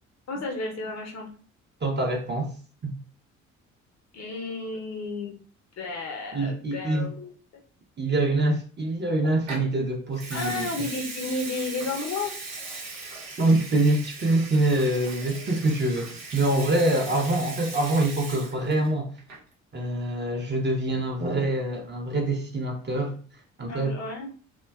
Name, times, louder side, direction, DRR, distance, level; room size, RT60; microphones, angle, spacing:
voice 1, 0.3-1.3 4.1-5.4 5.8-7.3 10.3-12.3 23.7-24.3, left 3 dB, 45° left, 0.7 m, -32 dB
voice 2, 1.8-2.5 2.8-2.9 6.3-7.1 8.0-10.7 13.4-19.1 19.7-23.2 23.6-24.0, right 2 dB, 30° right, 0.7 m, -25 dB
Water tap faucet / Sink (filling or washing) / Liquid, 9.5-9.7 10.1-18.9 19.2-19.5, right 3 dB, 80° right, 0.7 m, -39 dB
2.5 x 2.2 x 2.2 m
hypercardioid pair, 45°, 37 cm